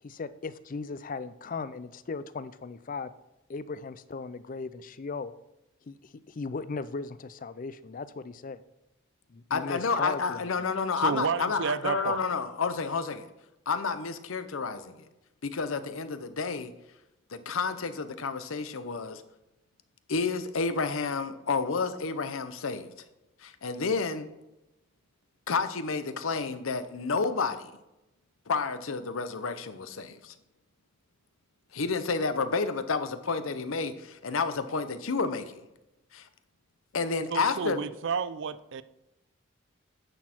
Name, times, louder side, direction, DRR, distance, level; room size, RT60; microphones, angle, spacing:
voice 1, 0.0-3.1 3.5-5.3 5.8-8.6 9.3-10.7, left 4 dB, 40° left, 15 dB, 0.4 m, -37 dB
voice 2, 9.5-13.3 13.7-15.0 15.4-16.7 17.3-19.2 20.1-22.9 23.4-24.3 25.5-27.7 28.5-30.3 31.7-35.6 36.1-36.3 36.9-37.8, left 4 dB, 75° left, 11 dB, 0.7 m, -30 dB
voice 3, 11.0-12.2 37.3-38.8, right 6 dB, 60° right, 16 dB, 0.4 m, -31 dB
9.8 x 6.3 x 4.4 m, 0.94 s
head